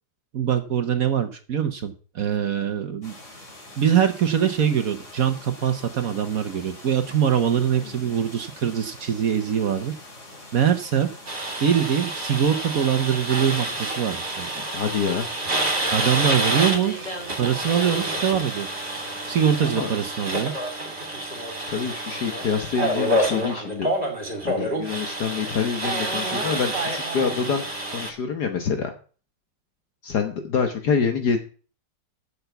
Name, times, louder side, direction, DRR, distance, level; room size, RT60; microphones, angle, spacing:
voice 1, 0.3-3.1 3.8-9.9 10.5-11.1 11.6-14.5 15.9-18.9 19.3-20.5, right 8 dB, 55° right, 8 dB, 1.2 m, -23 dB
sound 1, 3.0-19.6, left 2 dB, 40° left, 3.0 m, -44 dB
sound 2, 11.3-28.1, right 1 dB, 35° right, 2.8 m, -28 dB
voice 2, 14.5-15.3 19.6-19.9 21.7-23.9 24.4-27.6 27.9-28.9 30.0-31.4, left 6 dB, 65° left, 6 dB, 1.6 m, -26 dB
8.7 x 7.0 x 8.0 m, 0.39 s
omnidirectional pair, 2.0 m